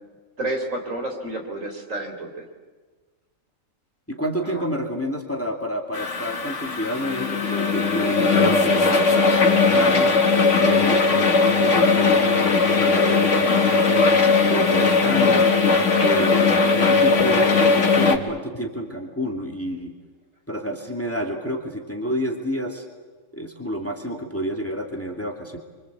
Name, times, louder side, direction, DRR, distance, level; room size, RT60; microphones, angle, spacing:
voice 1, 0.4-2.5 4.4-4.7, right 2 dB, 65° right, 3 dB, 4.2 m, -30 dB
voice 2, 4.1-10.1 10.6-14.1 14.5-15.4 16.0-19.9 20.5-22.8 23.3-25.6, equal, 10° left, 2 dB, 2.6 m, -29 dB
sound 1, 5.9-18.2, left 4 dB, 60° left, 2.2 m, -18 dB
28.5 x 24.5 x 8.3 m, 1.4 s
omnidirectional pair, 1.4 m